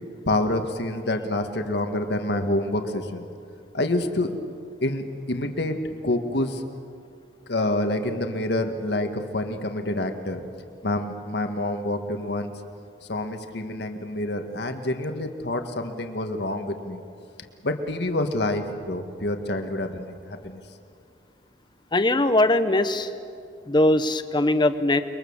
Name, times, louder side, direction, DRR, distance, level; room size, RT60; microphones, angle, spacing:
voice 1, 0.3-3.3 3.7-4.3 4.8-6.6 7.5-10.4 10.8-12.5 13.1-17.0 17.6-20.6, left 1 dB, 70° left, 6 dB, 1.8 m, -27 dB
voice 2, 21.9-23.1 23.7-25.0, left 1 dB, 25° left, 10 dB, 1.0 m, -20 dB
29.0 x 22.0 x 7.3 m, 2.4 s
head